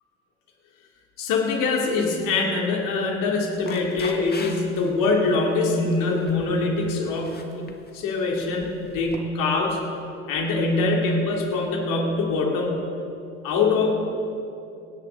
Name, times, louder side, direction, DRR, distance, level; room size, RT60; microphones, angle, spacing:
voice 1, 1.2-9.8 10.3-12.8 13.4-13.9, left 3 dB, 55° left, 0 dB, 3.1 m, -24 dB
sound 1, 3.6-4.9 5.3-5.6 6.0-6.5 7.1-7.9 8.6-9.2, left 4 dB, 25° left, 1.7 m, -40 dB
25.5 x 10.0 x 3.9 m, 2.7 s
hypercardioid pair, 70°, 38 cm